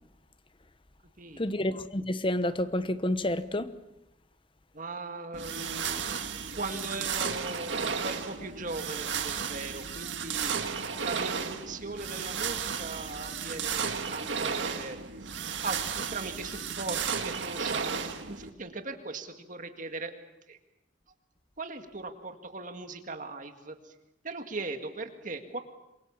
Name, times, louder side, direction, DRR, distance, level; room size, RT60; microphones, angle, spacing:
voice 1, 1.4-3.7 10.9-11.0, left 1 dB, 25° left, 1.1 m, -29 dB
voice 2, 4.7-6.1 6.5-15.3 15.6-20.1 20.5-20.6 21.6-23.9 24.2-25.6, right 3 dB, 45° right, 1.9 m, -39 dB
sound 1, 5.3-18.5, right 6 dB, 75° right, 2.0 m, -34 dB
27.5 x 23.0 x 7.2 m
head